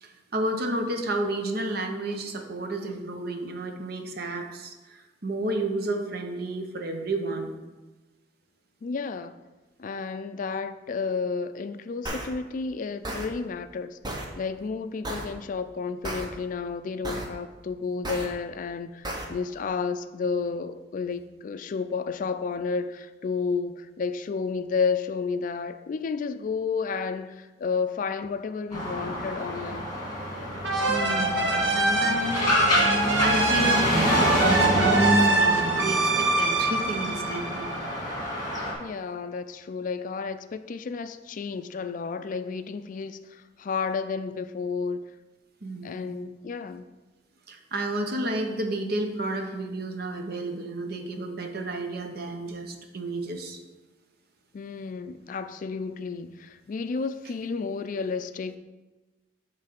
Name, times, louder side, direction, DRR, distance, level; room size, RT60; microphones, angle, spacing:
voice 1, 0.0-7.5 30.9-32.5 32.8-37.7 45.6-46.2 47.5-53.6, right 2 dB, 55° right, 4 dB, 0.8 m, -32 dB
voice 2, 8.8-9.3 9.8-29.9 38.8-45.0 45.8-46.8 54.5-58.6, left 5 dB, 45° left, 11 dB, 0.3 m, -31 dB
sound 1, 12.1-12.3 13.0-13.3 14.0-14.3 15.0-15.3 16.0-16.3 17.1-17.3 18.1-18.3 19.1-19.3, right 1 dB, 25° right, 0.9 m, -33 dB
sound 2, 28.7-38.7, left 1 dB, 20° left, 1.9 m, -27 dB
sound 3, 30.6-38.1, right 3 dB, 90° right, 1.0 m, -25 dB
8.4 x 3.3 x 5.9 m, 1.2 s
head